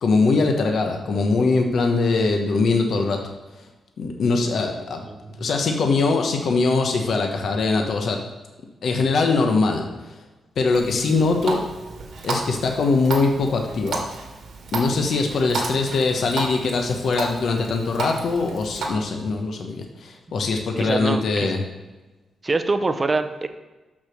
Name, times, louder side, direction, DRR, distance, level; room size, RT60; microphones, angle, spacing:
voice 1, 0.0-3.2 4.0-5.0 5.4-8.2 8.8-10.1 10.6-11.6 12.2-14.0 14.7-21.6, left 3 dB, 65° left, 3 dB, 0.9 m, -22 dB
voice 2, 5.1-5.5 20.8-21.5 22.4-23.5, right 3 dB, 25° right, 9 dB, 0.6 m, -25 dB
Water tap faucet, 10.7-18.9, right 3 dB, 75° right, 1.9 m, -32 dB
6.1 x 6.0 x 6.4 m, 1.2 s
cardioid pair, 110°, 0 cm